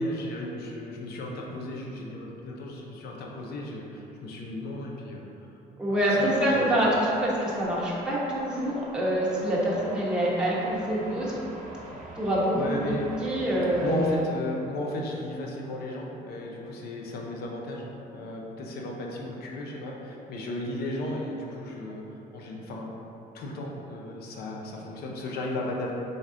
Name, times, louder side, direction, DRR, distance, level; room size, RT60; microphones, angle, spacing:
voice 1, 0.0-5.3 5.9-6.7 12.5-13.1 13.8-17.9 18.1-22.9 23.3-25.9, left 1 dB, 65° left, -1 dB, 0.7 m, -34 dB
voice 2, 5.8-11.4 12.1-12.9 13.2-14.0, right 1 dB, 5° right, -7 dB, 1.0 m, -26 dB
sound 1, 6.3-14.2, right 1 dB, 50° right, 0.8 m, -44 dB
3.9 x 3.5 x 3.7 m, 2.9 s
cardioid pair, 110°, 17 cm